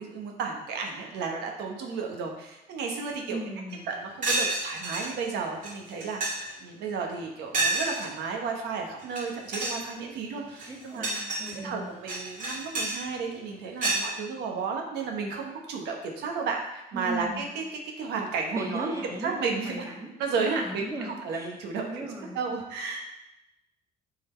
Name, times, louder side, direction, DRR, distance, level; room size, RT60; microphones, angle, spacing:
voice 1, 0.0-3.4 3.9-11.1 11.6-18.9 19.2-19.8 20.2-22.1 22.3-23.0, right 5 dB, 80° right, 1 dB, 1.1 m, -33 dB
voice 2, 3.3-3.9 10.7-11.9 16.9-17.4 18.5-20.1 20.4-21.5 21.8-22.4, right 1 dB, 20° right, -3 dB, 1.8 m, -37 dB
sound 1, 3.7-3.8 4.2-5.1 5.6-5.7 6.0-6.5 7.5-8.1 9.0-9.2 9.5-9.8 10.5-11.5 12.1-13.0 13.8-14.1, right 2 dB, 50° right, 2.6 m, -29 dB
7.3 x 4.0 x 4.4 m, 0.91 s
cardioid pair, 110°, 17 cm